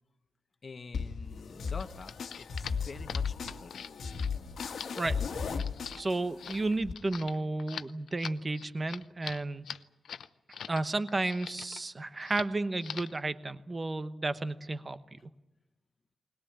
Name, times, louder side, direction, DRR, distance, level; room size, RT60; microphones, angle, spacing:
voice 1, 0.6-3.9, left 4 dB, 35° left, 10 dB, 1.2 m, -46 dB
sound 1, 0.9-6.9, left 5 dB, 70° left, 1.7 m, -36 dB
sound 2, 1.7-10.8 11.1-11.8 12.2-12.5 12.8-13.2, left 8 dB, 90° left, 0.8 m, -43 dB
voice 2, 6.0-9.6 10.7-15.0, right 2 dB, 25° right, 12 dB, 1.0 m, -32 dB
21.0 x 20.5 x 8.8 m, 0.99 s
wide cardioid pair, 160°, 0 cm